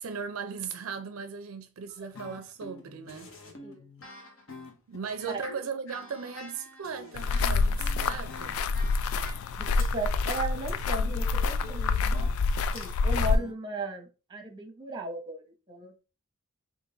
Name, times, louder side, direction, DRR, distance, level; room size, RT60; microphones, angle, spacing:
voice 1, 0.0-3.3 4.9-8.6, right 6 dB, 70° right, 0.4 m, -38 dB
sound 1, 1.9-9.9 10.2-13.5, left 2 dB, 65° left, 0.9 m, -46 dB
sound 2, 7.2-13.4, left 4 dB, 80° left, 0.3 m, -27 dB
voice 2, 9.9-12.3 12.7-15.9, right 2 dB, 20° right, 0.8 m, -36 dB
3.8 x 2.5 x 3.7 m
head